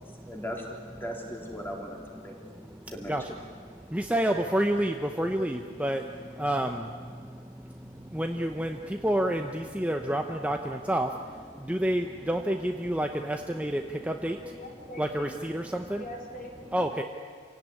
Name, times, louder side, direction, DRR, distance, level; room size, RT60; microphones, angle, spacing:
voice 1, 0.3-0.7 1.0-2.4 2.9-3.2 4.1-4.2, equal, 10° left, 0 dB, 3.7 m, -38 dB
voice 2, 3.9-6.0 6.4-6.8 8.1-8.8 9.0-11.1 11.7-14.4 15.0-16.0 16.7-17.0, right 1 dB, 5° right, 4 dB, 0.8 m, -28 dB
voice 3, 14.5-15.4 15.9-17.0, left 1 dB, 40° left, 0 dB, 4.4 m, -43 dB
27.5 x 17.5 x 9.9 m, 2.1 s
head